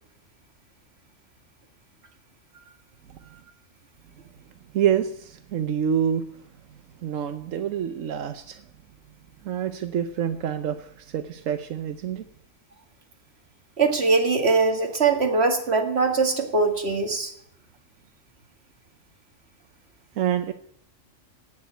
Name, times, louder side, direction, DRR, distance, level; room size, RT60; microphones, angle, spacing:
voice 1, 4.7-6.3 7.0-8.6 9.4-12.3 20.2-20.5, right 9 dB, 85° right, 9 dB, 1.2 m, -27 dB
voice 2, 13.8-17.3, right 4 dB, 55° right, 4 dB, 2.3 m, -22 dB
17.0 x 7.3 x 9.4 m, 0.66 s
omnidirectional pair, 1.3 m